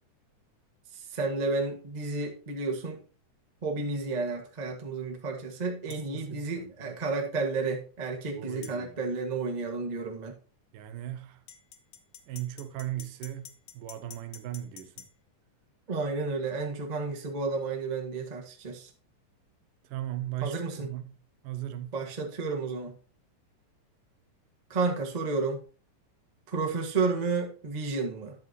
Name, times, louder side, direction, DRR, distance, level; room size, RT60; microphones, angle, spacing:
voice 1, 0.9-3.0 3.6-10.4 15.9-18.9 20.4-20.9 21.9-23.0 24.7-25.6 26.5-28.3, right 4 dB, 60° right, 0.4 m, -31 dB
sound 1, 5.9-6.1 8.6-8.8 11.5-15.1, left 9 dB, 70° left, 1.7 m, -48 dB
voice 2, 5.9-7.0 8.4-9.0 10.7-11.4 12.3-15.1 19.8-21.1 21.4-21.9, right 13 dB, 75° right, 2.3 m, -38 dB
10.5 x 8.2 x 2.9 m
omnidirectional pair, 4.0 m